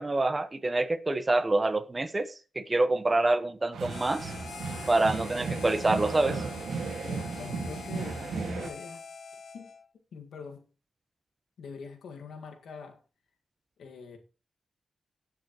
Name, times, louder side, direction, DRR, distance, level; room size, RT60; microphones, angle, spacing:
voice 1, 0.0-4.3 4.9-6.4, right 2 dB, 30° right, 1.1 m, -26 dB
sound 1, 3.7-8.7, right 4 dB, 90° right, 2.0 m, -35 dB
Harmonica, 3.9-9.9, left 6 dB, 70° left, 1.0 m, -45 dB
voice 2, 7.0-9.1 9.5-9.7 10.1-10.7 11.6-13.0 13.8-14.2, left 5 dB, 90° left, 1.8 m, -44 dB
17.5 x 6.7 x 3.0 m
cardioid pair, 55°, 0 cm